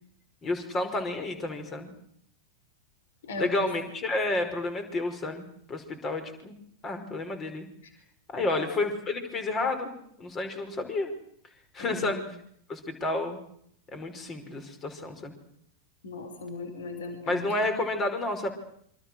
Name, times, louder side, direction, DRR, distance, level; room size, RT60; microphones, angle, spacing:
voice 1, 0.4-1.9 3.4-6.6 6.8-7.7 8.3-11.1 11.7-12.2 12.7-13.4 13.9-15.3 17.2-18.5, left 2 dB, 25° left, 8 dB, 5.4 m, -30 dB
voice 2, 3.2-3.7 8.4-8.7 11.8-12.2 16.0-17.7, left 2 dB, 60° left, 7 dB, 4.7 m, -37 dB
27.5 x 25.5 x 6.5 m, 0.68 s
figure-of-eight pair, 90°, 0 cm